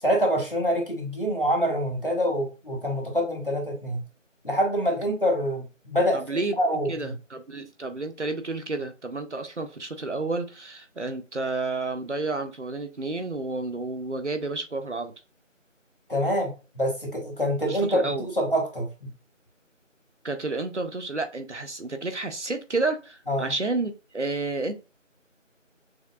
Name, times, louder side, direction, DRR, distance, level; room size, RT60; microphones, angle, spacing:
voice 1, 0.0-4.0 4.4-7.1 16.1-18.9 23.3-23.5, equal, 45° left, 1.3 m, -26 dB
voice 2, 6.1-6.6 6.9-15.1 17.7-18.3 20.2-24.7, right 3 dB, 60° right, 0.7 m, -30 dB
6.2 x 2.4 x 2.4 m
figure-of-eight pair, 180°, 39 cm